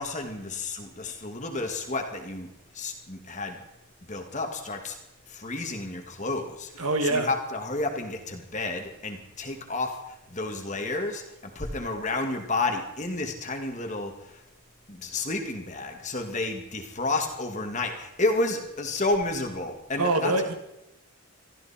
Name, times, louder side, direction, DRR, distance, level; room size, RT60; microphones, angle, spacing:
voice 1, 0.0-3.6 4.0-5.0 5.3-14.4 14.9-20.4, left 2 dB, 35° left, 4 dB, 2.0 m, -31 dB
voice 2, 6.8-7.3 20.0-20.5, right 2 dB, 80° right, 6 dB, 2.1 m, -24 dB
23.0 x 14.0 x 4.3 m, 0.91 s
head